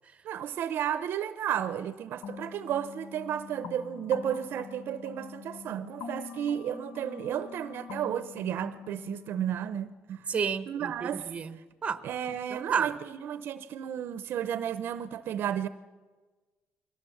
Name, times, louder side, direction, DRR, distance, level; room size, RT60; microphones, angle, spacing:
voice 1, 0.2-10.3 10.7-11.3 12.0-15.7, right 9 dB, 55° right, 0.7 m, -33 dB
sound 1, 2.2-9.8, left 7 dB, 80° left, 1.4 m, -45 dB
voice 2, 10.3-12.0 12.5-12.9, right 6 dB, 30° right, 1.0 m, -31 dB
22.5 x 17.5 x 7.2 m
cardioid pair, 140°, 4 cm